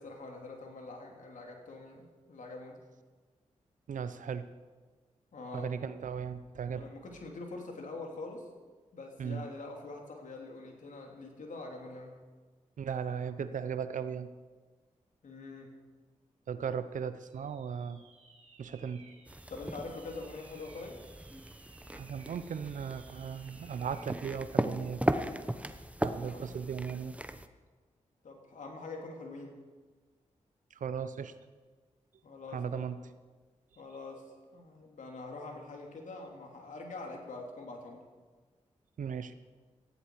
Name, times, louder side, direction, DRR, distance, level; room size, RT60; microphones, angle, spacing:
voice 1, 0.0-2.8 5.3-5.7 6.7-8.5 8.9-12.2 15.2-15.8 19.5-21.0 26.0-26.5 28.2-29.6 32.2-32.9 33.7-38.1, left 3 dB, 75° left, 1 dB, 3.2 m, -44 dB
voice 2, 3.9-4.5 5.5-6.9 9.2-9.4 12.8-14.3 16.5-18.0 18.6-19.1 21.9-25.0 26.0-27.1 30.7-31.3 32.5-33.0 39.0-39.3, right 7 dB, 80° right, 12 dB, 0.9 m, -37 dB
sound 1, 17.3-24.2, right 4 dB, 55° right, 2.8 m, -60 dB
sound 2, 19.3-27.5, right 1 dB, 10° right, 1.1 m, -37 dB
18.0 x 14.5 x 4.9 m, 1.4 s
cardioid pair, 45°, 13 cm